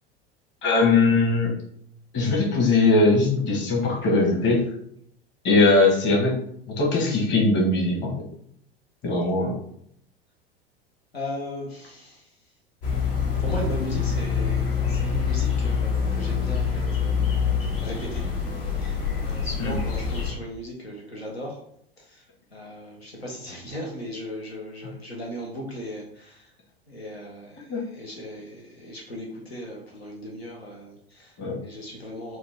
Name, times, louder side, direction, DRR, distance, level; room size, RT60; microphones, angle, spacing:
voice 1, 0.6-1.5 2.1-4.6 5.4-6.4 6.8-8.1 9.0-9.6 19.6-19.7 27.7-27.8 31.4-31.6, left 3 dB, 35° left, -2 dB, 1.5 m, -20 dB
voice 2, 11.1-12.4 13.4-17.3 17.8-18.3 18.6-19.0 19.2-21.6 22.0-22.3 22.5-26.5 26.9-32.4, equal, 85° left, -2 dB, 0.8 m, -37 dB
sound 1, 12.8-20.3, left 6 dB, 65° left, 1.3 m, -25 dB
4.3 x 2.4 x 3.4 m, 0.69 s
figure-of-eight pair, 80°, 31 cm